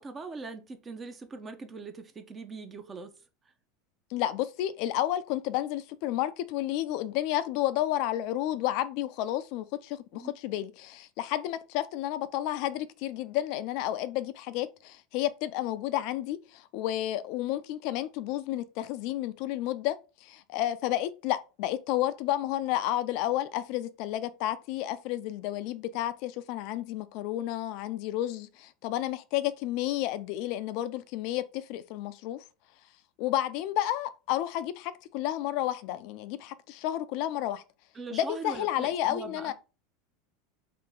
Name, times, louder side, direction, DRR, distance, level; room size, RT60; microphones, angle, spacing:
voice 1, 0.0-3.1 10.1-10.3 37.9-39.5, right 3 dB, 25° right, 0.7 m, -41 dB
voice 2, 4.1-32.4 33.2-37.6 38.1-39.5, left 13 dB, 60° left, 0.4 m, -31 dB
3.2 x 2.8 x 3.8 m
hypercardioid pair, 90°, 0 cm